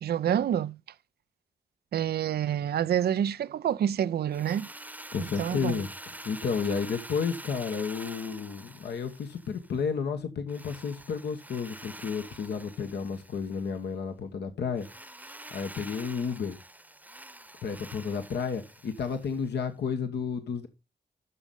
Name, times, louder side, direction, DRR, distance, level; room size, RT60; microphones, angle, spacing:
voice 1, 0.0-0.8 1.9-4.7 5.4-5.8, right 9 dB, 70° right, 0.4 m, -27 dB
Drill, 4.3-9.8 10.5-13.8 14.8-19.6, right 1 dB, 10° right, 0.9 m, -46 dB
voice 2, 5.1-14.9 15.2-16.6 17.6-20.7, left 6 dB, 80° left, 1.2 m, -32 dB
8.3 x 6.3 x 5.2 m
supercardioid pair, 45°, 17 cm